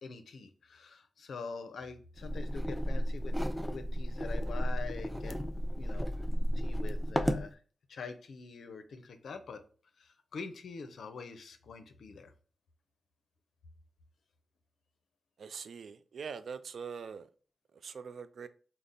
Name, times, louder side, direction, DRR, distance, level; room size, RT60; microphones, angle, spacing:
voice 1, 0.0-3.4 3.7-5.4 5.8-6.1 6.5-7.6 7.9-9.6 10.0-12.3, left 4 dB, 75° left, 0.5 m, -45 dB
sound 1, 2.2-7.5, equal, 5° right, 0.5 m, -33 dB
voice 2, 15.4-17.3 17.8-18.5, right 6 dB, 70° right, 0.3 m, -43 dB
3.4 x 2.0 x 4.0 m
supercardioid pair, 45°, 0 cm